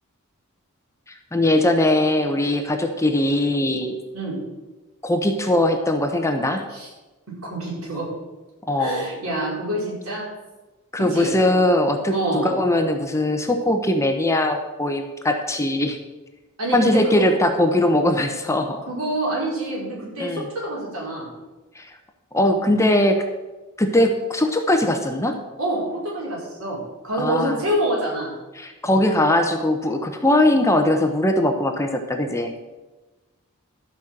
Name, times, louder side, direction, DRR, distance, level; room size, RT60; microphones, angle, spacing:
voice 1, 1.3-4.0 5.0-6.7 8.7-9.1 10.9-16.0 16.7-18.8 20.2-20.5 21.7-21.9 22.3-23.2 23.8-25.4 27.2-27.6 28.6-32.5, left 1 dB, 15° left, 5 dB, 0.9 m, -20 dB
voice 2, 7.4-8.1 8.8-10.3 11.1-11.3 12.1-12.5 16.6-17.2 18.9-21.3 25.6-28.3, right 1 dB, 70° right, -4 dB, 4.9 m, -26 dB
13.0 x 5.7 x 7.7 m, 1.2 s
head